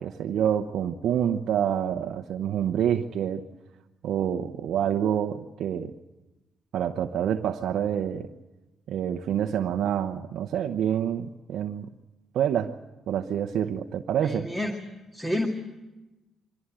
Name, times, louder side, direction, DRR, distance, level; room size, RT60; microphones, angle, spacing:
voice 1, 0.0-3.4 4.0-5.9 6.7-8.3 8.9-11.9 12.3-12.7 13.1-14.5, right 9 dB, 75° right, 4 dB, 0.8 m, -27 dB
voice 2, 14.2-14.8 15.1-15.5, left 1 dB, 10° left, 3 dB, 2.1 m, -29 dB
23.5 x 15.5 x 8.9 m, 1.1 s
cardioid pair, 90°, 0 cm